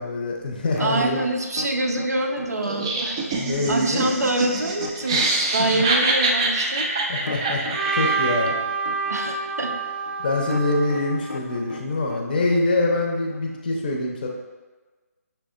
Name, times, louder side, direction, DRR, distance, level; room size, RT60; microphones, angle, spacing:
voice 1, 0.0-1.2 3.3-4.1 5.1-5.2 5.7-5.8 7.1-7.7 7.9-8.5 10.2-14.3, left 2 dB, 35° left, 1 dB, 0.6 m, -24 dB
sound 1, 0.7-13.6, left 2 dB, 80° left, 0.5 m, -38 dB
voice 2, 0.8-3.3 3.7-5.2 5.5-6.9 9.1-9.7, right 2 dB, 75° right, 3 dB, 0.6 m, -25 dB
Laughter, 2.6-8.5, right 3 dB, 20° right, 0.3 m, -25 dB
Trumpet, 7.7-11.9, right 5 dB, 35° right, 0.7 m, -28 dB
5.8 x 3.4 x 2.4 m, 1.3 s
figure-of-eight pair, 150°, 9 cm